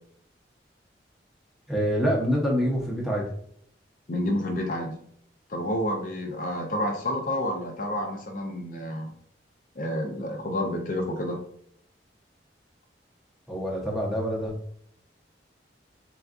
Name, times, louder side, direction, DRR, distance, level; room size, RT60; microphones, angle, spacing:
voice 1, 1.7-3.2 13.5-14.5, equal, ahead, -4 dB, 0.7 m, -26 dB
voice 2, 4.1-5.0 5.5-9.1 9.8-11.4, left 1 dB, 45° left, 2 dB, 0.4 m, -29 dB
3.6 x 2.3 x 2.4 m, 0.65 s
head